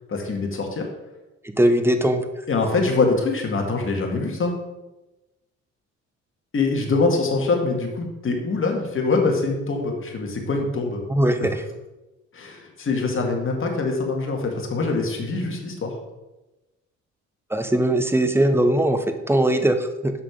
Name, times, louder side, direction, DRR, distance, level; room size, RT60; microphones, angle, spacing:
voice 1, 0.1-0.9 2.5-4.5 6.5-11.0 11.4-11.5 12.3-15.9, left 3 dB, 45° left, 2 dB, 1.9 m, -24 dB
voice 2, 1.6-2.2 11.1-11.6 17.5-20.1, right 1 dB, 10° right, 8 dB, 0.8 m, -20 dB
6.7 x 5.9 x 5.1 m, 1.0 s
cardioid pair, 90°, 30 cm